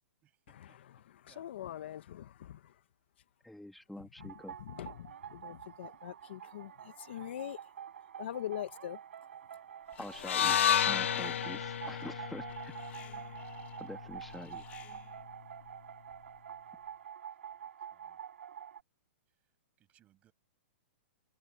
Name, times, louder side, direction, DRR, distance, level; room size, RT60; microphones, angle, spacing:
voice 1, 0.2-0.8 1.2-1.9 17.4-18.3 19.3-19.5 19.8-20.3, right 12 dB, 20° right, 7.6 m, -70 dB
voice 2, 1.2-2.7 4.2-4.3 4.6-7.6 8.2-9.0, left 11 dB, 60° left, 1.1 m, -43 dB
voice 3, 3.4-4.5 10.0-12.7 13.8-14.6, left 1 dB, ahead, 1.6 m, -46 dB
sound 1, 4.2-18.8, right 9 dB, 85° right, 4.6 m, -47 dB
Alarm, 9.9-10.5 10.8-15.2, left 12 dB, 20° left, 1.6 m, -57 dB
sound 2, 10.2-14.4, left 9 dB, 80° left, 0.6 m, -32 dB
hypercardioid pair, 160°, 7 cm